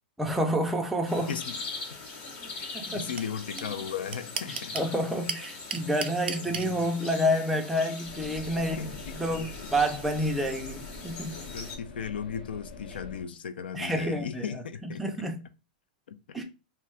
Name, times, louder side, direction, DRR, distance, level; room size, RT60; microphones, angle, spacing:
voice 1, 0.2-1.4 2.7-3.1 4.5-8.9 9.2-11.4 13.7-14.6 15.0-15.4 16.3-16.4, equal, ahead, 0.4 m, -29 dB
sound 1, 1.1-11.7, left 3 dB, 35° left, 1.1 m, -41 dB
voice 2, 1.3-1.8 2.6-4.8 6.5-6.9 8.5-9.7 11.4-15.1 16.1-16.4, left 7 dB, 85° left, 0.4 m, -37 dB
sound 2, 3.2-3.3 3.6-3.7 3.9-4.9 5.3-6.7, right 6 dB, 90° right, 0.4 m, -32 dB
sound 3, 8.1-13.2, left 3 dB, 70° left, 0.8 m, -44 dB
2.7 x 2.2 x 3.1 m
hypercardioid pair, 130°, 5 cm